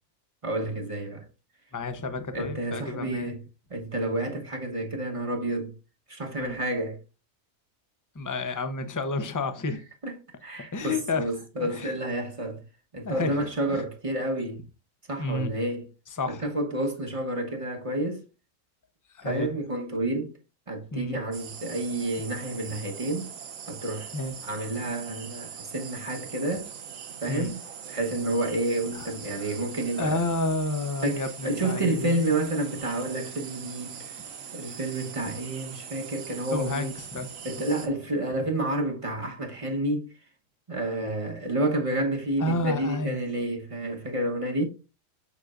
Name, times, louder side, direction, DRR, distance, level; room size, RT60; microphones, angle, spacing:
voice 1, 0.4-1.2 2.3-3.4 3.7-5.7 6.1-7.0 10.0-10.1 10.4-12.6 12.9-14.6 15.1-15.8 16.3-18.2 19.2-20.3 20.7-23.3 23.7-24.1 24.4-26.7 27.2-30.2 31.0-34.1 34.5-36.9 37.4-40.1 40.7-44.7, right 1 dB, 25° right, 1.0 m, -30 dB
voice 2, 1.7-3.3 6.4-6.6 8.1-9.8 10.6-11.3 11.6-11.9 13.0-13.4 13.7-13.8 15.2-15.5 16.1-16.5 19.1-19.5 20.9-21.2 24.1-24.3 27.3-27.5 28.9-29.1 29.3-29.5 30.0-32.2 36.5-37.3 42.4-43.2, left 2 dB, 20° left, 0.5 m, -30 dB
sound 1, 21.3-37.9, right 7 dB, 85° right, 1.3 m, -42 dB
6.9 x 6.5 x 2.4 m
omnidirectional pair, 1.4 m